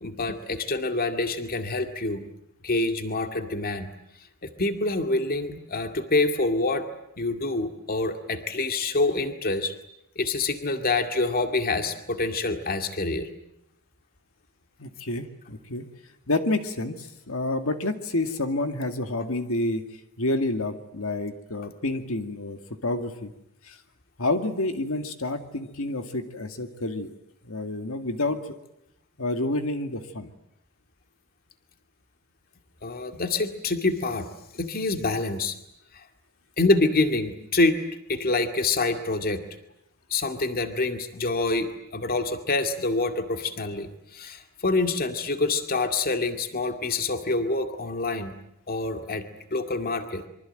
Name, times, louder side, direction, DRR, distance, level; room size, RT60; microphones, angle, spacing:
voice 1, 0.0-2.3 2.6-3.9 4.4-6.8 7.2-9.7 10.2-13.3 32.8-34.3 34.5-35.6 36.6-37.8 38.1-39.4 40.1-48.3 48.7-49.3 49.5-50.3, left 3 dB, 45° left, 6 dB, 2.2 m, -26 dB
voice 2, 14.8-15.8 16.3-19.8 20.2-23.3 23.6-23.8 24.2-27.1 27.5-28.6 29.2-30.3, left 2 dB, 70° left, 7 dB, 2.2 m, -29 dB
26.5 x 24.5 x 9.1 m, 0.82 s
head